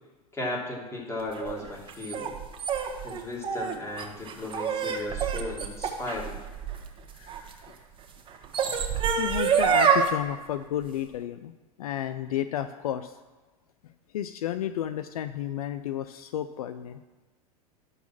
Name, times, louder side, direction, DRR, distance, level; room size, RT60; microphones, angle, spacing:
voice 1, 0.3-2.4 3.0-6.4, left 2 dB, 15° left, -3 dB, 3.0 m, -36 dB
sound 1, 1.4-7.5 8.3-10.1, right 7 dB, 25° right, 1.4 m, -27 dB
voice 2, 7.1-7.7 9.2-11.5 11.8-13.2 14.1-17.0, left 10 dB, 65° left, 11 dB, 0.5 m, -32 dB
11.5 x 4.1 x 7.3 m, 1.3 s
figure-of-eight pair, 90°, 20 cm